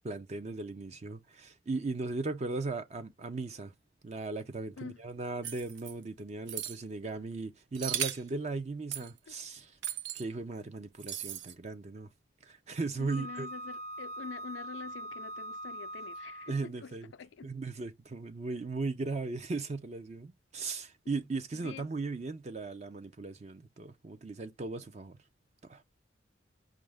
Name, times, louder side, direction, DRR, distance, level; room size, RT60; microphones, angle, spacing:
voice 1, 0.0-3.7 4.0-9.8 10.1-12.1 12.4-13.5 16.5-17.1 17.4-25.2 25.6-25.8, right 3 dB, 35° right, 0.4 m, -37 dB
sound 1, 5.4-5.9 6.5-6.8 7.8-8.3 8.9-9.1 9.8-10.2 11.0-11.5, right 10 dB, 80° right, 0.7 m, -36 dB
voice 2, 9.0-9.3 13.0-17.5 21.0-21.2 21.5-21.9, left 5 dB, 90° left, 0.4 m, -46 dB
Wind instrument woodwind instrument, 13.1-16.7, right 1 dB, 55° right, 0.9 m, -42 dB
5.4 x 2.5 x 3.2 m
head